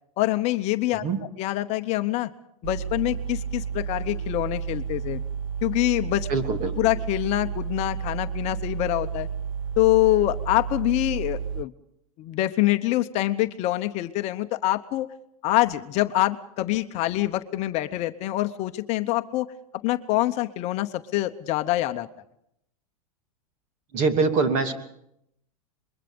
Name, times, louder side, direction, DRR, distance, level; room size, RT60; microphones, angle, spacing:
voice 1, 0.2-2.3 2.6-5.2 5.6-6.3 6.8-9.3 9.8-11.7 12.2-15.1 15.4-19.5 19.8-22.1, left 17 dB, 35° left, 9 dB, 0.9 m, -25 dB
sound 1, 2.6-11.6, right 7 dB, 65° right, 0.8 m, -31 dB
voice 2, 6.3-6.7 23.9-24.7, right 4 dB, 40° right, 7 dB, 2.9 m, -23 dB
25.0 x 22.0 x 5.3 m, 0.76 s
supercardioid pair, 145°, 18 cm